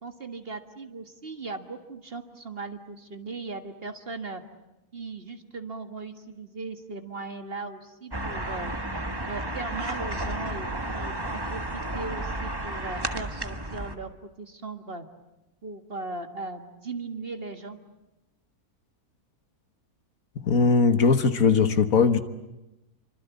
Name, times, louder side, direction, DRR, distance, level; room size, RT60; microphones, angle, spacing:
voice 1, 0.0-4.4 4.9-8.7 9.3-14.1 14.4-15.0 15.6-17.8, right 3 dB, 40° right, 1.9 m, -38 dB
sound 1, 8.1-14.0, right 1 dB, 15° right, 1.5 m, -32 dB
voice 2, 20.4-22.2, left 5 dB, 65° left, 1.7 m, -20 dB
28.0 x 25.0 x 8.4 m
omnidirectional pair, 1.6 m